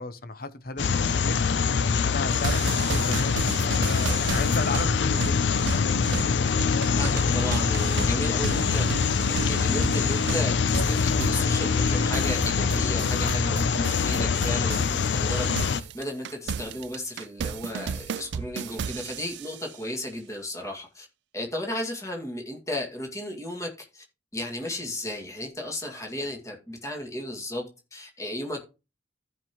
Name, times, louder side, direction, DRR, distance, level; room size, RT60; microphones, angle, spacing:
voice 1, 0.0-1.4 1.9-5.9, left 3 dB, 55° left, 0.8 m, -35 dB
sound 1, 0.8-15.8, left 5 dB, 85° left, 0.5 m, -24 dB
sound 2, 2.3-15.0 15.3-19.7, right 6 dB, 80° right, 0.4 m, -34 dB
voice 2, 7.0-8.9 9.3-21.1 21.3-24.0 24.3-27.7 27.9-28.6, left 1 dB, 20° left, 2.1 m, -34 dB
14.5 x 5.3 x 3.0 m
head